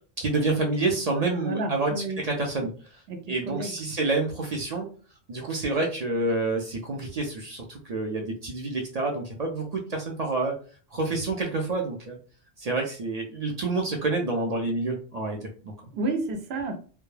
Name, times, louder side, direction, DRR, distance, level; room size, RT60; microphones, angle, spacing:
voice 1, 0.2-2.7 3.3-4.9 5.3-10.6 10.9-12.2 12.6-15.7, right 3 dB, 50° right, 0 dB, 0.5 m, -28 dB
voice 2, 1.3-2.2 3.1-4.0 15.9-16.8, right 2 dB, 80° right, 4 dB, 0.9 m, -31 dB
2.1 x 2.1 x 3.1 m, 0.40 s
omnidirectional pair, 1.1 m